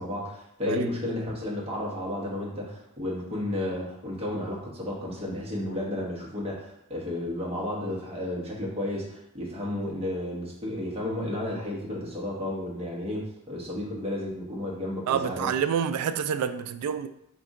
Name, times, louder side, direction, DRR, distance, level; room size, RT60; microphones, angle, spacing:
voice 1, 0.0-15.5, left 1 dB, 25° right, -3 dB, 1.1 m, -32 dB
voice 2, 15.1-17.1, right 7 dB, 85° right, 13 dB, 0.3 m, -27 dB
5.2 x 2.6 x 3.6 m, 0.76 s
head